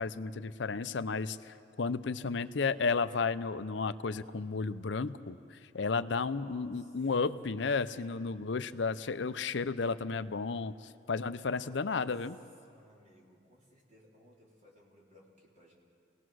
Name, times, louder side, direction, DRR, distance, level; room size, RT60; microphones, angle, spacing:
voice 1, 0.0-12.4, left 4 dB, 70° left, 13 dB, 0.6 m, -33 dB
voice 2, 2.2-3.2 6.3-7.0 7.2-7.4 8.5-8.7 11.4-12.1 12.6-15.8, equal, 40° right, -3 dB, 3.6 m, -60 dB
28.0 x 18.5 x 6.3 m, 2.4 s
head